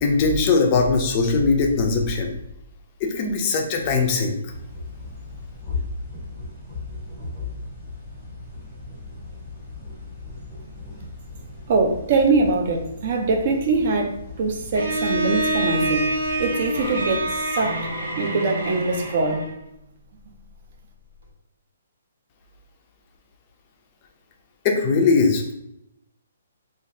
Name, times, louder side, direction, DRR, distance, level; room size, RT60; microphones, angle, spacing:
voice 1, 0.0-2.3 3.0-4.5 24.6-25.6, left 4 dB, 20° left, 2 dB, 0.4 m, -20 dB
sound 1, 4.5-17.4, left 3 dB, 5° left, 0.8 m, -37 dB
voice 2, 11.7-16.1 16.4-17.8 18.2-19.5, right 3 dB, 35° right, 3 dB, 0.4 m, -23 dB
Bowed string instrument, 14.7-19.6, right 2 dB, 90° right, 1.2 m, -26 dB
2.6 x 2.3 x 3.1 m, 0.81 s
hypercardioid pair, 170°, 0 cm